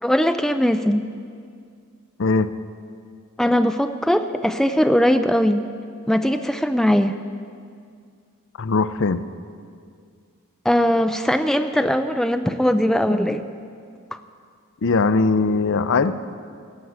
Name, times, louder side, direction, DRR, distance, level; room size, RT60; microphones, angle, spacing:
voice 1, 0.0-1.0 3.4-5.6 6.1-7.2 10.6-13.4, equal, ahead, 8 dB, 0.4 m, -20 dB
voice 2, 2.2-2.5 8.6-9.2 14.8-16.1, left 4 dB, 55° left, 12 dB, 0.6 m, -20 dB
16.0 x 7.8 x 9.4 m, 2.2 s
head